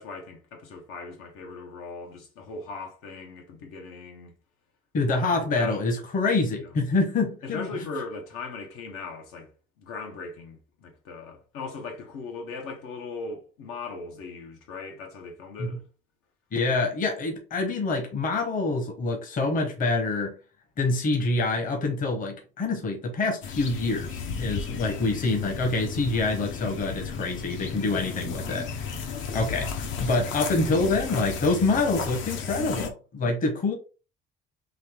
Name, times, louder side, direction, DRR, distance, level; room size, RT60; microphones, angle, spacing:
voice 1, 0.0-4.3 5.1-5.9 6.6-6.7 7.4-9.5 9.8-15.8, left 4 dB, 90° left, 1.3 m, -39 dB
voice 2, 4.9-7.7 15.6-15.7 16.5-20.3 20.8-33.7, left 3 dB, 40° left, 1.0 m, -26 dB
sound 1, 23.4-32.9, left 5 dB, 65° left, 0.8 m, -34 dB
4.0 x 2.7 x 3.4 m
cardioid pair, 155°, 21 cm